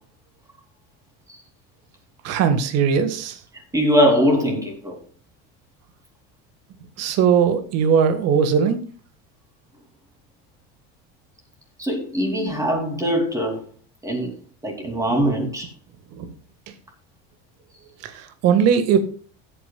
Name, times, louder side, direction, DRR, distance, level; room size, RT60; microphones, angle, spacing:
voice 1, 2.2-3.4 7.0-8.8 16.1-16.3 18.0-19.0, right 7 dB, 55° right, 1.7 m, -19 dB
voice 2, 3.7-5.0 11.8-13.6 14.0-14.3 14.6-15.7, equal, 10° right, 2.7 m, -21 dB
16.0 x 8.8 x 2.3 m
cardioid pair, 130°, 30 cm